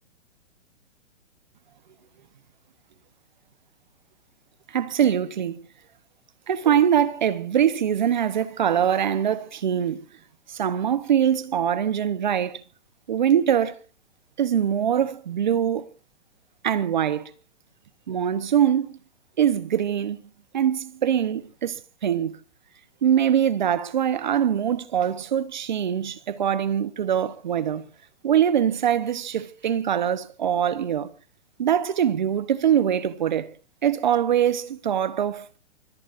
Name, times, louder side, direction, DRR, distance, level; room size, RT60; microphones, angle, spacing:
voice 1, 4.7-5.6 6.5-10.0 10.5-12.6 13.1-13.8 14.4-15.9 16.6-17.3 18.1-18.9 19.4-20.2 20.5-22.4 23.0-27.8 28.2-31.1 31.6-33.5 33.8-35.5, right 9 dB, 40° right, 0.9 m, -23 dB
25.0 x 18.0 x 2.5 m
hypercardioid pair, 180°, 36 cm